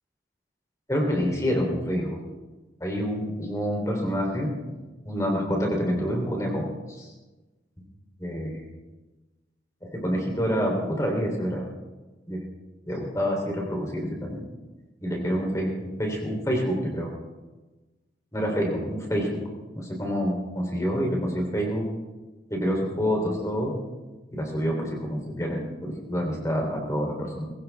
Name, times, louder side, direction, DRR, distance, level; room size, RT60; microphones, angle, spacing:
voice 1, 0.9-2.2 2.8-4.5 5.0-7.1 8.2-8.6 9.8-11.6 12.3-12.4 12.9-14.4 15.0-17.1 18.3-19.4 19.7-21.9 22.5-23.7 24.3-27.4, equal, 15° left, 0 dB, 3.4 m, -27 dB
21.5 x 15.5 x 3.5 m, 1.2 s
head